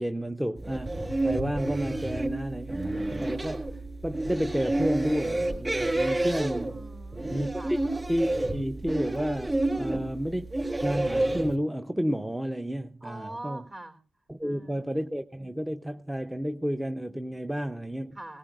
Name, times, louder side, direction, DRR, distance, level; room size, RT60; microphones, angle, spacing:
voice 1, 0.0-3.7 4.0-6.8 7.3-7.8 8.1-13.6 14.3-18.2, equal, 5° right, 0.6 m, -31 dB
sound 1, 0.6-11.6, right 2 dB, 25° right, 3.5 m, -30 dB
voice 2, 6.7-7.7 9.7-10.1 13.0-14.0 14.4-14.8 18.1-18.4, right 1 dB, 45° right, 3.4 m, -43 dB
18.0 x 18.0 x 2.4 m
supercardioid pair, 55°, 0 cm